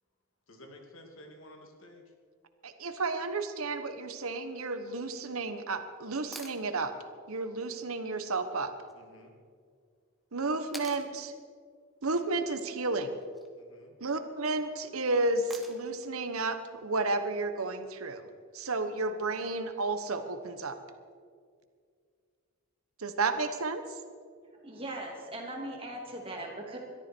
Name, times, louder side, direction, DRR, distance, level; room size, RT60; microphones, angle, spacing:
voice 1, 0.5-2.0 8.9-9.4 13.6-14.0, left 1 dB, 70° left, 2 dB, 2.7 m, -52 dB
voice 2, 2.6-6.9 7.3-8.7 10.3-11.3 12.0-13.1 14.0-18.3 18.5-20.8 23.0-23.8, right 3 dB, 80° right, 9 dB, 1.2 m, -32 dB
sound 1, 6.3-6.6 8.9-9.0 10.7-11.1 13.1-13.5 15.5-16.0 18.1-18.2, right 1 dB, ahead, 1.2 m, -45 dB
voice 3, 24.5-26.8, right 1 dB, 25° right, 0 dB, 2.8 m, -39 dB
22.0 x 13.5 x 4.6 m, 2.1 s
head